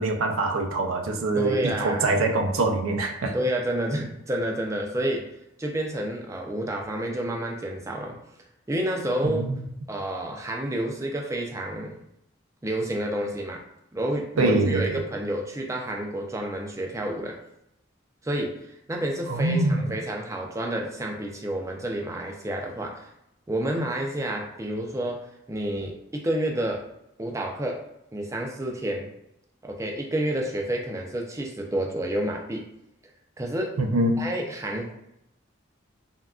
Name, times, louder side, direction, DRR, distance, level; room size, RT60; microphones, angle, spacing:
voice 1, 0.0-3.4 9.2-9.6 14.4-15.0 19.3-19.9 33.8-34.3, right 2 dB, 90° right, 4 dB, 0.4 m, -24 dB
voice 2, 1.4-2.1 3.3-5.3 5.6-8.2 8.7-9.5 9.9-12.0 12.6-13.6 13.9-17.4 18.2-23.1 23.5-26.9 27.2-27.8 28.1-29.1 29.6-32.7 33.4-33.8 34.2-34.9, right 1 dB, 15° right, 0 dB, 0.4 m, -29 dB
3.6 x 2.2 x 2.3 m, 0.82 s
head